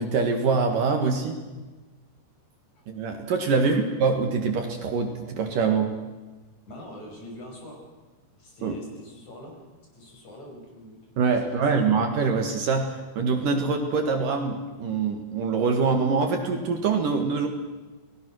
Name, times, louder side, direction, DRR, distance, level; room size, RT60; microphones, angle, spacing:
voice 1, 0.0-1.4 2.9-5.9 8.6-8.8 11.2-17.5, right 4 dB, 60° right, 5 dB, 3.1 m, -24 dB
voice 2, 6.7-7.8 8.3-9.6 9.9-11.0 11.3-11.9, left 1 dB, 45° left, 0 dB, 7.1 m, -43 dB
29.5 x 20.5 x 6.4 m, 1.2 s
omnidirectional pair, 4.7 m